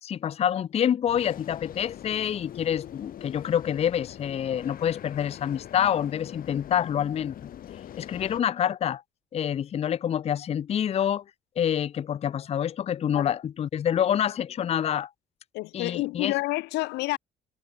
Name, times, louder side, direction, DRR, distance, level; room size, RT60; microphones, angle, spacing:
voice 1, 0.0-7.5 8.0-9.0 9.3-11.2 11.6-15.1 15.7-16.3, left 9 dB, 40° left, 0.6 m, -27 dB
sound 1, 1.1-8.4, left 11 dB, 55° left, 4.0 m, -43 dB
voice 2, 15.5-17.2, left 21 dB, 90° left, 1.0 m, -29 dB
cardioid pair, 110°, 17 cm